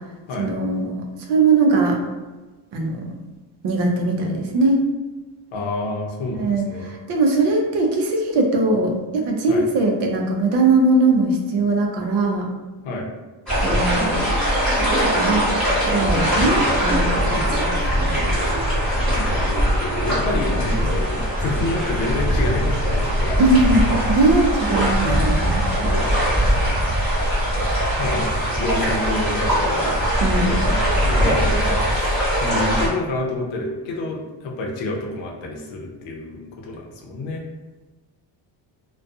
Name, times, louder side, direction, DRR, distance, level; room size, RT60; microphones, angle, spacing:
voice 1, 0.4-2.0 2.7-3.1 3.6-4.8 6.3-12.5 13.6-14.3 15.0-15.4 15.8-18.4 23.4-25.6 30.2-30.7, right 2 dB, 60° right, 1 dB, 0.6 m, -20 dB
voice 2, 5.5-6.9 9.5-9.7 12.8-13.1 19.2-23.5 26.8-27.1 27.6-30.0 30.4-30.8 31.0-37.4, left 2 dB, 70° left, 0 dB, 0.7 m, -28 dB
sound 1, 13.5-32.9, equal, ahead, 1.0 m, -21 dB
2.3 x 2.2 x 2.6 m, 1.2 s
cardioid pair, 175°, 47 cm